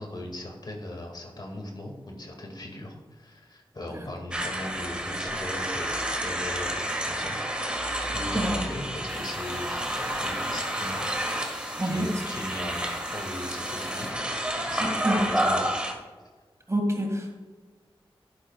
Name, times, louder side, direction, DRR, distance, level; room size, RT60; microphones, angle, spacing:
voice 1, 0.0-11.5 11.8-12.8 13.1-14.2 14.6-15.7, left 1 dB, 45° left, 2 dB, 1.9 m, -38 dB
sound 1, 4.3-15.9, right 1 dB, 10° right, 1.6 m, -30 dB
sound 2, 9.1-14.1, equal, 5° left, 1.6 m, -47 dB
voice 2, 11.7-12.2 14.8-15.3 16.7-17.4, right 1 dB, 30° right, 2 dB, 1.9 m, -27 dB
11.5 x 10.0 x 2.3 m, 1.4 s
wide cardioid pair, 85°, 10 cm